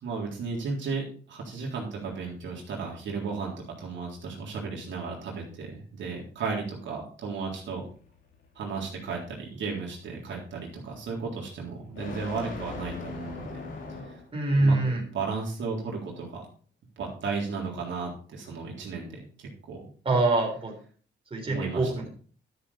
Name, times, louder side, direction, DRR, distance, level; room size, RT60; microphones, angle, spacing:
voice 1, 0.0-7.8 8.6-13.6 14.0-14.2 14.5-16.5 17.0-19.1 19.4-19.8 21.5-21.9, right 4 dB, 70° right, -2 dB, 3.7 m, -34 dB
sound 1, 7.4-14.4, left 4 dB, 80° left, 3.3 m, -42 dB
voice 2, 14.3-15.1 20.1-20.8 21.3-22.1, right 2 dB, 30° right, 0 dB, 3.7 m, -24 dB
11.5 x 7.2 x 4.3 m, 0.42 s
cardioid pair, 90°, 20 cm